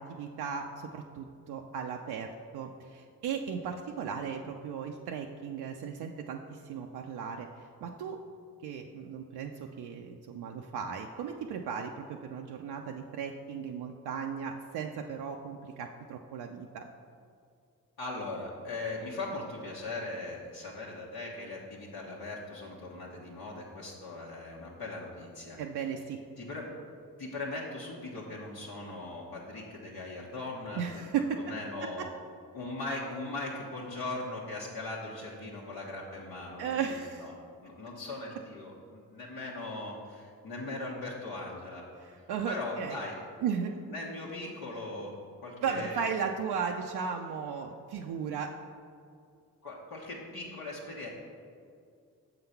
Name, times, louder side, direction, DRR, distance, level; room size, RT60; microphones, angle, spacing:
voice 1, 0.0-8.2 8.6-16.9 25.6-26.2 30.8-31.4 31.8-32.1 36.6-37.3 42.0-43.0 43.4-43.7 45.6-48.5, right 7 dB, 70° right, 2 dB, 0.5 m, -36 dB
voice 2, 18.0-25.6 26.4-26.7 27.2-31.0 31.4-32.1 32.5-37.3 37.6-41.8 42.5-43.2 43.9-45.1 45.4-46.1 49.6-51.1, left 2 dB, 70° left, -5 dB, 1.2 m, -39 dB
6.7 x 3.9 x 5.6 m, 2.4 s
supercardioid pair, 45°, 40 cm